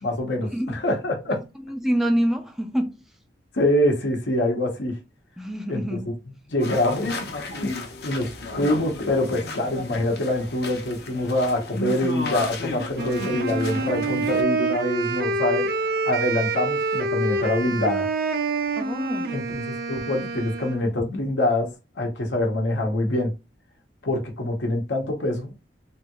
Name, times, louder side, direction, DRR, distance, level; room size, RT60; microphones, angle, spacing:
voice 1, 0.0-1.4 3.5-5.0 5.7-5.8 6.5-7.2 7.5-7.7 8.0-15.7 16.1-18.1 19.3-21.7 22.0-23.3 24.0-25.5, left 1 dB, 85° left, 1.0 m, -25 dB
voice 2, 1.7-3.0 5.4-6.1 18.8-19.3, equal, ahead, 0.3 m, -26 dB
sound 1, 6.6-14.4, left 2 dB, 60° left, 0.8 m, -33 dB
Wind instrument woodwind instrument, 13.0-20.9, right 3 dB, 55° right, 0.5 m, -27 dB
3.4 x 2.3 x 2.9 m
head